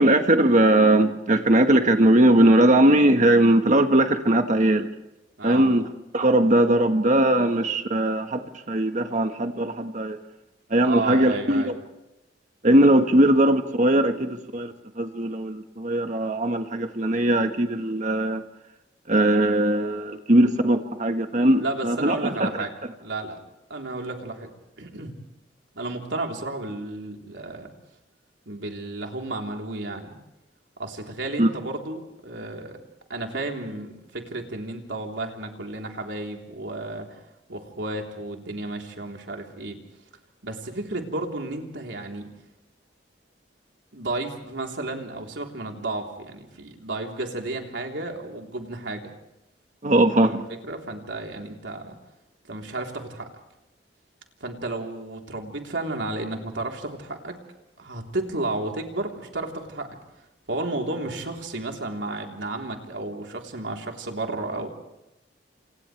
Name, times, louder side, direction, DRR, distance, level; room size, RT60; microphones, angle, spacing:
voice 1, 0.0-4.9 5.4-5.8 6.1-8.4 8.7-10.2 10.7-11.7 12.6-18.4 19.1-22.5 31.4-31.5 49.8-50.4, right 1 dB, 45° right, 6 dB, 1.5 m, -20 dB
voice 2, 5.4-5.7 10.8-11.7 21.6-22.7 23.0-23.4 23.7-24.5 24.8-25.1 25.7-27.7 28.5-30.2 30.8-32.8 33.1-37.2 37.5-39.8 40.4-42.3 43.9-49.1 50.2-52.0 52.5-53.3 54.4-57.4 57.8-59.9 60.5-64.7, right 2 dB, 90° right, 1 dB, 3.7 m, -32 dB
30.0 x 27.5 x 3.4 m, 0.93 s
head